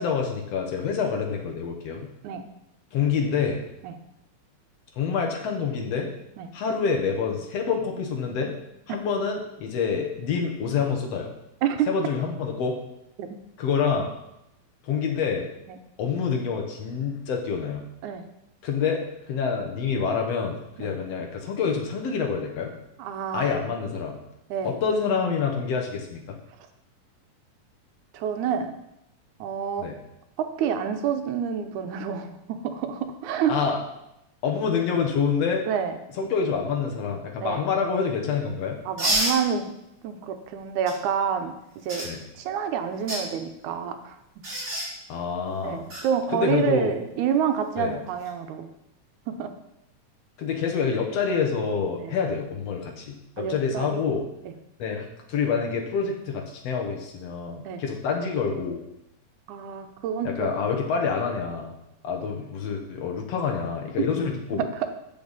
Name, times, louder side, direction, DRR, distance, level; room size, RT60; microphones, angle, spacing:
voice 1, 0.0-2.1 2.9-3.6 5.0-6.1 6.5-8.5 8.9-11.3 11.9-12.8 13.6-14.1 14.8-15.5 16.0-17.8 18.6-22.7 23.3-24.2 24.6-26.4 29.8-30.0 33.5-33.8 34.4-35.6 36.2-38.8 42.0-42.2 45.1-45.8 46.3-46.9 47.8-47.9 50.4-54.2 54.8-58.8 60.2-61.7 62.0-64.7, left 6 dB, 65° left, 2 dB, 2.0 m, -27 dB
voice 2, 23.0-23.7 24.5-24.8 28.1-28.7 29.4-29.9 30.4-33.6 35.7-35.9 37.4-37.6 38.9-39.7 40.0-41.5 41.9-42.1 42.4-44.2 45.6-48.7 49.3-49.5 52.0-52.2 53.4-54.0 54.5-54.6 57.7-57.8 59.5-60.6 64.0-64.1 64.5-64.9, right 8 dB, 85° right, 8 dB, 2.2 m, -28 dB
sound 1, 39.0-39.4 40.9-41.0 41.9-42.1 42.9-43.2 44.4-44.9 45.9-46.0 48.1-48.3, right 1 dB, 35° right, 4.2 m, -26 dB
8.5 x 6.8 x 4.0 m, 0.86 s
omnidirectional pair, 3.4 m